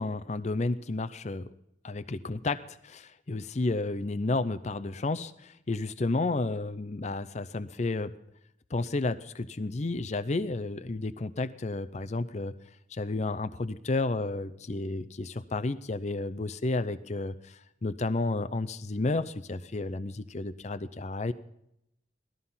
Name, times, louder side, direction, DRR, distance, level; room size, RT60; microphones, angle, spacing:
voice 1, 0.0-1.5 1.8-8.1 8.7-12.5 12.9-21.3, left 2 dB, 40° left, 11 dB, 0.5 m, -31 dB
18.0 x 13.5 x 5.6 m, 0.80 s
head